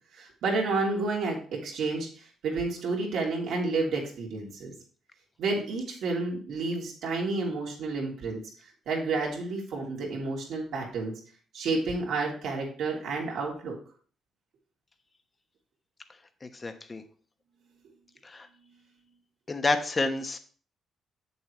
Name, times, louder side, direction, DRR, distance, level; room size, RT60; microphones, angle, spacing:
voice 1, 0.1-4.7 5.4-8.4 8.9-11.1 11.5-13.8, right 3 dB, 75° right, -2 dB, 2.8 m, -30 dB
voice 2, 16.4-17.0 18.2-18.5 19.5-20.4, left 3 dB, 30° left, 8 dB, 1.1 m, -29 dB
8.1 x 7.0 x 3.1 m, 0.43 s
cardioid pair, 90°, 0 cm